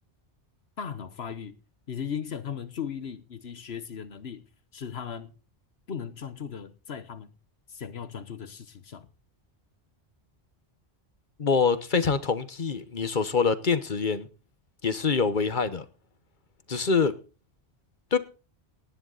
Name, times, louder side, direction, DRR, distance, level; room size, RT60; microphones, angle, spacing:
voice 1, 0.8-1.6 1.9-4.4 4.7-5.3 5.9-7.3 7.7-9.1, left 7 dB, 75° left, 1.3 m, -37 dB
voice 2, 11.4-14.3 14.8-15.8 16.7-17.1 18.1-18.2, left 5 dB, 50° left, 1.3 m, -25 dB
18.0 x 11.0 x 4.1 m
omnidirectional pair, 1.1 m